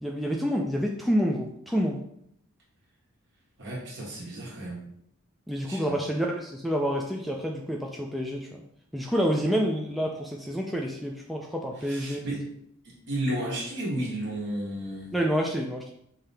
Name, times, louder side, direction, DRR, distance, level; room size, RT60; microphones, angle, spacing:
voice 1, 0.0-2.0 5.5-8.6 8.9-12.2 15.1-15.9, equal, ahead, 0 dB, 0.3 m, -28 dB
voice 2, 3.6-4.8 5.7-6.0 11.8-12.5 12.8-15.1, right 1 dB, 55° right, -3 dB, 1.5 m, -33 dB
5.6 x 2.8 x 3.3 m, 0.71 s
head